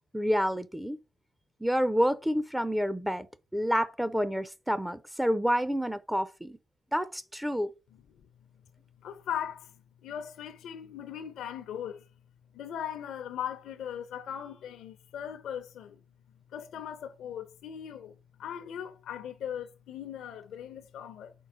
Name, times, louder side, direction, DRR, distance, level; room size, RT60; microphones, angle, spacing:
voice 1, 0.1-1.0 1.6-3.3 3.5-6.6 6.9-7.7, equal, 5° right, 0.5 m, -28 dB
voice 2, 9.0-9.7 10.0-12.0 12.5-16.0 16.5-18.1 18.4-21.3, left 9 dB, 80° left, 0.6 m, -39 dB
5.4 x 4.2 x 4.9 m
cardioid pair, 70°, 0 cm